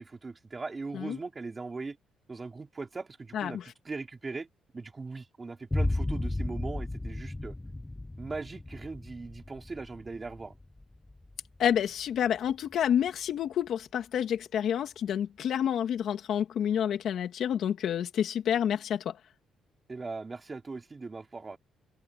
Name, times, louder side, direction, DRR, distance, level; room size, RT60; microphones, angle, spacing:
voice 1, 0.0-2.0 2.3-4.5 4.7-7.6 8.2-10.6 19.9-21.6, right 3 dB, 20° right, 3.8 m, -39 dB
sound 1, 5.7-13.1, left 2 dB, 10° left, 0.5 m, -35 dB
voice 2, 11.6-19.2, left 9 dB, 55° left, 2.6 m, -29 dB
cardioid pair, 180°, 0 cm